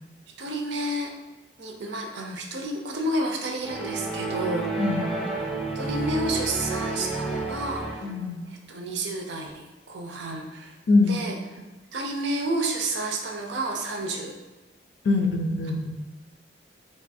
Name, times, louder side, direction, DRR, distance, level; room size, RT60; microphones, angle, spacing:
voice 1, 0.4-1.1 1.6-4.7 5.7-8.1 8.7-10.7 11.1-11.4 11.9-14.3, right 1 dB, 75° right, 3 dB, 0.5 m, -30 dB
sound 1, 3.6-8.3, right 3 dB, ahead, 0.5 m, -30 dB
voice 2, 8.0-8.4 10.9-11.2 15.0-15.9, left 3 dB, 70° left, 3 dB, 0.4 m, -23 dB
2.6 x 2.4 x 4.1 m, 1.2 s
head